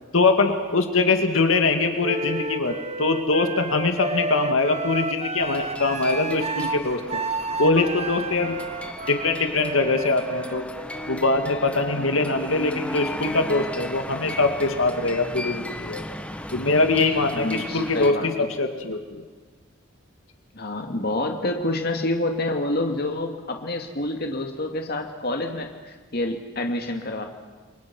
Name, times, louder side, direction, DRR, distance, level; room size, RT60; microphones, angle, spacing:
voice 1, 0.1-7.2 7.6-8.6 9.1-10.6 11.1-16.0 16.5-19.2, left 3 dB, 85° left, 5 dB, 2.1 m, -23 dB
Wind instrument woodwind instrument, 2.0-11.8, right 3 dB, 35° right, 1.0 m, -31 dB
sound 1, 5.4-18.1, left 1 dB, 5° left, 1.2 m, -36 dB
voice 2, 17.4-18.5 20.5-27.2, left 1 dB, 50° left, 3 dB, 2.3 m, -28 dB
29.0 x 23.5 x 6.1 m, 1.4 s
head